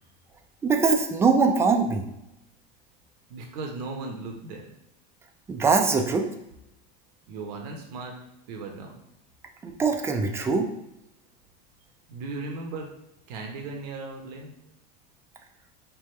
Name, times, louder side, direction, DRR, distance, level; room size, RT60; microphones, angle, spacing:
voice 1, 0.6-2.0 5.5-6.3 9.6-10.7, right 4 dB, 10° right, 5 dB, 0.3 m, -22 dB
voice 2, 3.3-4.7 7.3-8.2 8.5-8.9 12.1-12.9 13.3-14.5, right 3 dB, 75° right, 2 dB, 0.8 m, -36 dB
3.4 x 2.2 x 4.2 m, 0.84 s
supercardioid pair, 145°, 21 cm